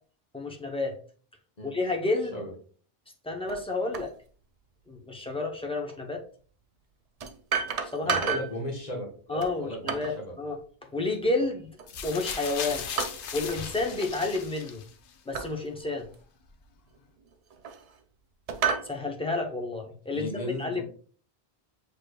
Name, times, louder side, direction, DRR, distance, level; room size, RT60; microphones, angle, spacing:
voice 1, 0.3-0.9 1.6-2.4 3.2-4.1 4.9-6.2 7.9-8.2 9.3-10.1 10.4-10.6 10.9-11.7 12.0-12.8 13.3-14.8 15.3-16.1 18.8-20.8, left 3 dB, 5° left, 1 dB, 0.4 m, -30 dB
sound 1, 3.5-3.6 3.9-4.1 5.9-6.0 7.2-8.6 9.4-10.2 11.8-12.2 13.0-13.6 13.9-14.2 15.3-15.5 16.1-16.2 17.2-18.0 18.5-18.9, right 6 dB, 50° right, 0.5 m, -31 dB
voice 2, 8.0-10.3 20.1-20.8, equal, 40° left, -1 dB, 1.2 m, -36 dB
sound 2, 11.9-15.1 16.0-16.1, left 7 dB, 60° left, 0.7 m, -37 dB
6.4 x 3.3 x 2.2 m, 0.43 s
omnidirectional pair, 1.1 m